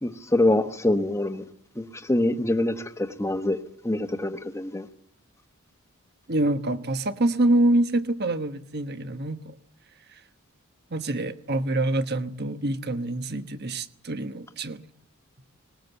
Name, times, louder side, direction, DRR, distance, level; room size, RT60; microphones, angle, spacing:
voice 1, 0.0-1.4 1.8-3.6 3.8-4.9, left 1 dB, 15° left, 1.1 m, -25 dB
voice 2, 6.3-9.6 10.9-14.8, right 1 dB, 50° right, 1.2 m, -26 dB
20.0 x 19.5 x 8.1 m
head